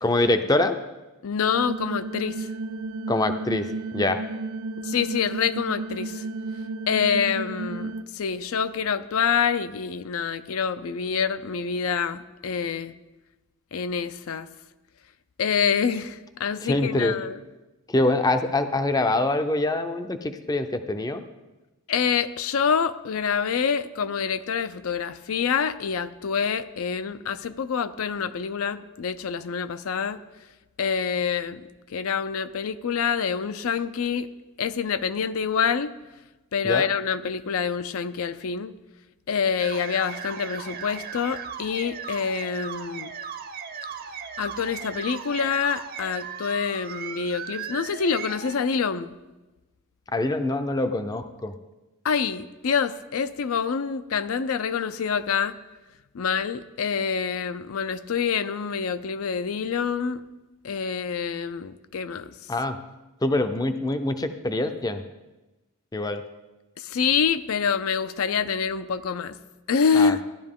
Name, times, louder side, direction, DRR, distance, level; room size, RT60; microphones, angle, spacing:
voice 1, 0.0-0.8 3.1-3.7 3.9-4.2 16.6-17.2 17.9-21.2 36.6-36.9 50.1-51.5 62.5-62.8 63.2-65.0 65.9-66.2 70.0-70.1, left 2 dB, 15° left, 9 dB, 0.5 m, -24 dB
voice 2, 1.2-2.5 4.8-6.2 6.9-12.9 13.7-14.5 15.4-17.4 21.9-30.2 30.8-31.6 31.9-34.3 34.6-35.9 36.5-38.7 39.3-43.1 44.4-49.1 52.0-55.6 56.1-60.2 60.6-62.3 66.8-69.4 69.7-70.2, left 6 dB, 70° left, 12 dB, 0.5 m, -26 dB
sound 1, 1.6-8.0, right 3 dB, 85° right, 0.5 m, -33 dB
sound 2, 39.6-48.6, right 7 dB, 45° right, 0.7 m, -37 dB
14.0 x 11.5 x 3.7 m, 1.1 s
head